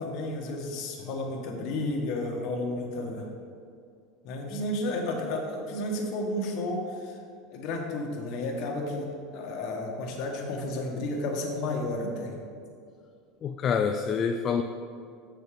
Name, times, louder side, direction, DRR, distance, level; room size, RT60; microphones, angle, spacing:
voice 1, 0.0-3.3 4.2-7.2 7.5-9.1 9.3-12.4, left 1 dB, 50° left, 0 dB, 1.5 m, -32 dB
voice 2, 13.4-14.6, left 6 dB, 30° left, 6 dB, 0.3 m, -26 dB
7.0 x 6.6 x 5.1 m, 2.3 s
supercardioid pair, 150°, 0 cm